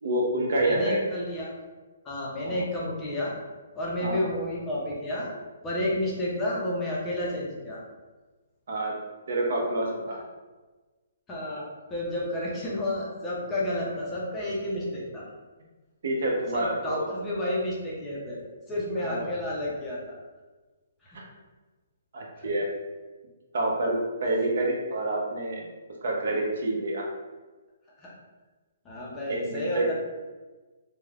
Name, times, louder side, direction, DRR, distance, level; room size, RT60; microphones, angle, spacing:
voice 1, 0.0-1.1 2.4-2.7 4.0-4.2 8.7-8.9 9.3-10.2 16.0-17.2 19.0-19.3 21.1-21.2 22.1-22.7 23.5-25.7 26.0-27.0 29.3-29.9, right 1 dB, 60° right, -1 dB, 0.6 m, -28 dB
voice 2, 0.6-1.5 2.1-3.4 3.7-5.3 5.6-7.8 11.3-11.6 11.9-15.2 16.5-20.2 28.0-28.1 28.9-29.9, left 1 dB, 10° left, -5 dB, 0.4 m, -31 dB
3.0 x 2.0 x 2.3 m, 1.3 s
hypercardioid pair, 165°, 0 cm